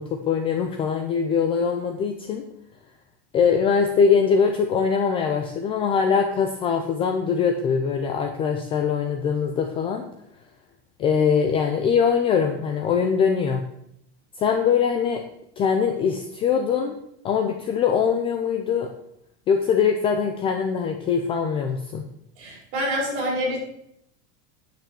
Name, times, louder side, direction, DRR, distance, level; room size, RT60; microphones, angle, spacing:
voice 1, 0.0-2.4 3.3-10.1 11.0-13.6 14.4-15.2 15.6-16.9 17.2-18.9 19.5-22.0, left 6 dB, 15° left, 4 dB, 0.4 m, -22 dB
voice 2, 22.4-23.6, equal, 40° right, -2 dB, 4.8 m, -26 dB
10.0 x 6.0 x 6.9 m, 0.75 s
supercardioid pair, 180°, 34 cm